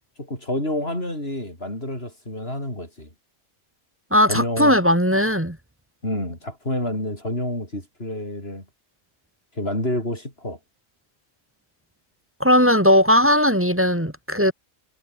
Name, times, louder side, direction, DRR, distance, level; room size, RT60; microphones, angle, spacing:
voice 1, 0.2-3.1 4.3-4.8 6.0-8.6 9.5-10.6, left 1 dB, 45° left, 8.3 m, -28 dB
voice 2, 4.1-5.6 12.4-14.5, equal, 10° right, 1.7 m, -18 dB
omnidirectional pair, 1.4 m